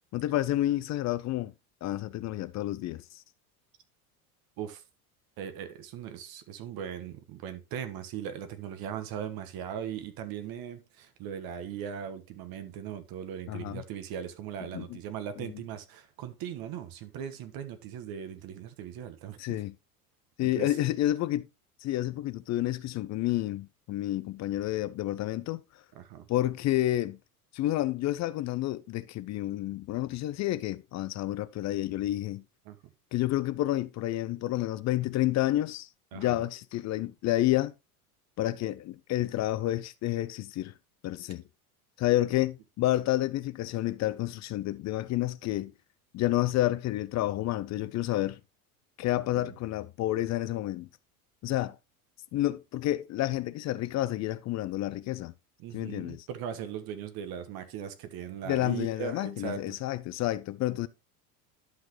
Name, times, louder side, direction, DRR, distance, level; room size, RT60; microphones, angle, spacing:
voice 1, 0.1-1.5 1.8-3.2 13.5-13.8 14.7-15.0 15.4-15.5 19.4-19.7 20.4-21.5 21.8-25.6 26.3-27.2 27.5-32.4 33.1-37.7 38.4-40.7 41.0-41.4 42.0-45.7 46.1-48.4 49.0-50.9 51.4-51.8 52.3-55.3 55.7-56.3 58.5-60.9, left 15 dB, 40° left, 0.6 m, -30 dB
voice 2, 5.4-19.6 20.4-20.8 25.9-26.3 32.6-32.8 36.1-36.4 49.3-49.5 55.6-59.7, right 9 dB, 50° right, 1.4 m, -39 dB
11.5 x 5.8 x 3.0 m
hypercardioid pair, 80°, 45 cm